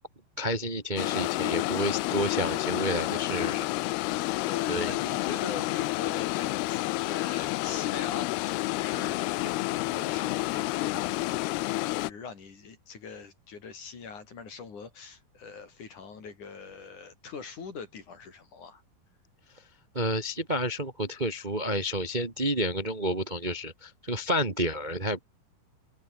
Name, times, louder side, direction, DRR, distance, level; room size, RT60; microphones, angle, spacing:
voice 1, 0.4-3.7 4.7-4.9 19.9-25.2, equal, 85° right, 0.4 m, -30 dB
sound 1, 1.0-12.1, left 20 dB, 85° left, 2.6 m, -30 dB
voice 2, 4.4-18.8, left 5 dB, 50° left, 5.6 m, -42 dB
omnidirectional pair, 4.5 m